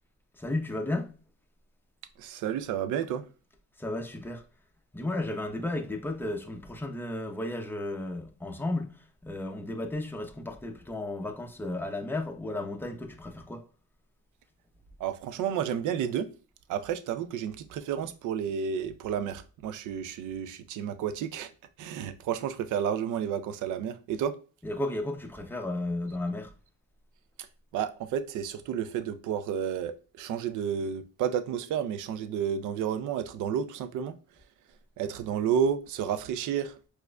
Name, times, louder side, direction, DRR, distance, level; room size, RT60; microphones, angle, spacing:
voice 1, 0.3-1.1 3.8-4.4 4.9-13.6 24.6-26.5, left 2 dB, 5° left, 0.6 m, -34 dB
voice 2, 2.2-3.2 15.0-16.3 16.7-21.5 21.8-24.3 27.7-34.2 35.0-36.8, right 8 dB, 80° right, 0.5 m, -31 dB
4.7 x 2.5 x 2.2 m
cardioid pair, 90°, 30 cm